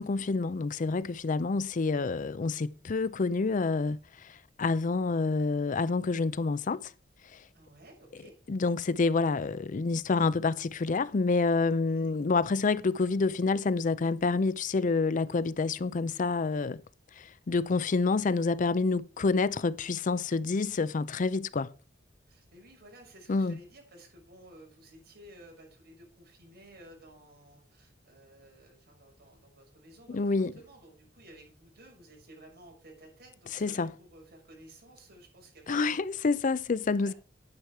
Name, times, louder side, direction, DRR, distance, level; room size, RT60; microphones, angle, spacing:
voice 1, 0.0-6.9 7.3-7.4 8.5-16.8 17.2-21.7 23.3-23.6 30.1-30.5 33.6-33.9 35.7-37.1, left 4 dB, 45° left, 0.5 m, -28 dB
voice 2, 7.5-8.4 11.9-12.2 22.3-36.0 36.9-37.2, right 1 dB, 60° right, 6.0 m, -54 dB
9.8 x 9.6 x 4.6 m
head